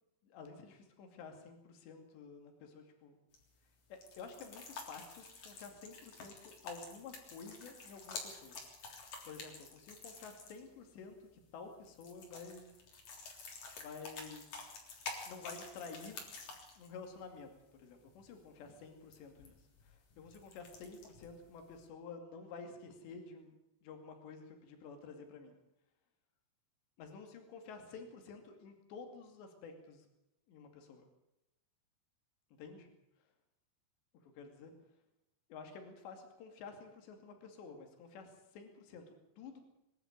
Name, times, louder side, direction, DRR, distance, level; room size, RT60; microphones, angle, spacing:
voice 1, 0.2-3.2 3.9-8.6 9.3-12.7 13.8-14.5 15.3-16.2 16.8-17.5 17.8-23.5 23.8-25.6 27.0-30.1 30.5-31.1 32.6-32.9 34.2-34.7 35.5-39.6, left 4 dB, 75° left, 5 dB, 4.7 m, -51 dB
sound 1, 3.3-21.8, left 4 dB, 50° left, 4.8 m, -51 dB
23.5 x 12.0 x 9.5 m, 0.88 s
omnidirectional pair, 5.1 m